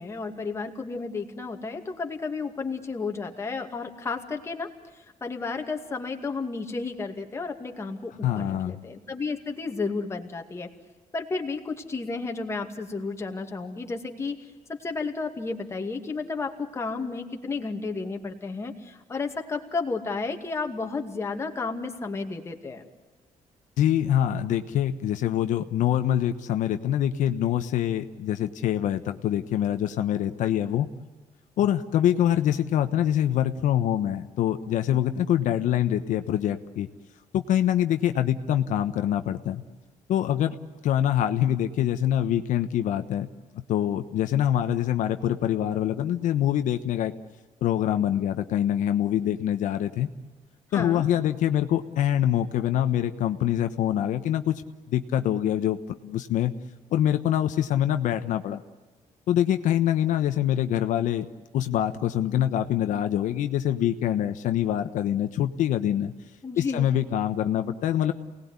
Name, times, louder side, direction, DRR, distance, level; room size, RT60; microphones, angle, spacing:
voice 1, 0.0-4.7 5.2-10.7 11.1-14.4 14.8-22.8 50.7-51.0 66.4-66.9, left 4 dB, 20° left, 3 dB, 2.3 m, -32 dB
voice 2, 8.2-8.8 23.8-30.9 31.6-36.9 37.3-39.6 40.1-40.6 40.8-43.3 43.7-47.1 47.6-50.1 50.7-54.6 54.9-56.5 56.9-58.6 59.3-61.3 61.5-66.1 66.6-68.1, left 11 dB, 80° left, 8 dB, 1.1 m, -25 dB
28.5 x 19.0 x 9.7 m, 1.3 s
cardioid pair, 165°, 13 cm